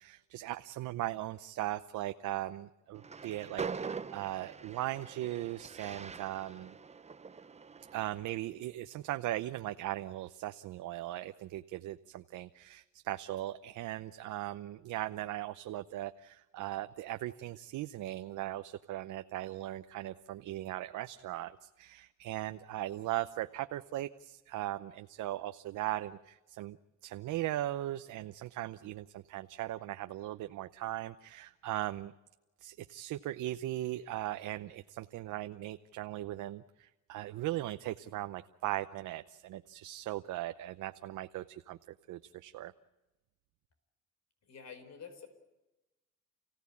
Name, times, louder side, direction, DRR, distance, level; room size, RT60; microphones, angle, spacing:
voice 1, 0.0-6.7 7.9-26.8 27.0-32.1 32.6-41.8 42.1-42.7, right 14 dB, 85° right, 9 dB, 0.8 m, -38 dB
Train, 2.9-8.2, right 5 dB, 20° right, 0.7 m, -43 dB
voice 2, 44.4-45.3, left 6 dB, 60° left, 9 dB, 4.9 m, -48 dB
29.5 x 16.5 x 8.5 m, 1.0 s
cardioid pair, 90°, 30 cm